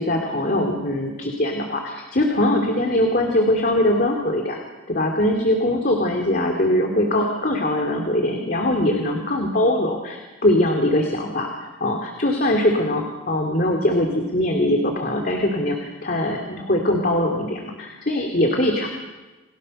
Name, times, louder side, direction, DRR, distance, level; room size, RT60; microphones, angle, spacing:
voice 1, 0.0-4.6 4.9-18.9, left 1 dB, 45° left, 2 dB, 2.6 m, -22 dB
29.0 x 21.0 x 6.5 m, 1.2 s
head